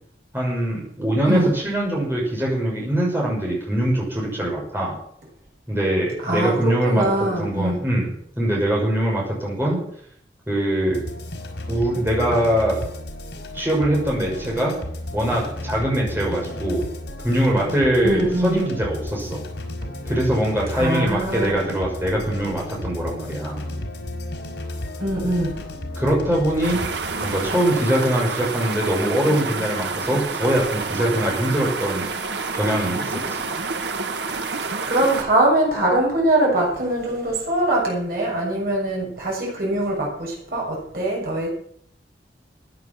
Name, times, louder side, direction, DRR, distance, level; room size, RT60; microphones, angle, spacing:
voice 1, 0.3-4.9 5.7-7.0 7.4-8.1 8.4-9.8 10.5-11.0 11.7-12.8 13.5-14.7 15.1-16.8 17.2-19.4 20.1-23.6 26.0-26.8 27.2-32.0 32.5-33.5, right 1 dB, 15° right, -4 dB, 5.9 m, -22 dB
voice 2, 6.2-7.8 18.0-18.6 20.7-21.6 25.0-25.5 34.9-41.5, right 1 dB, 55° right, -2 dB, 6.8 m, -22 dB
sound 1, 10.9-27.5, left 1 dB, 90° left, 4.1 m, -33 dB
sound 2, 26.6-35.2, right 4 dB, 75° right, 1.4 m, -28 dB
15.5 x 9.2 x 7.4 m, 0.65 s
head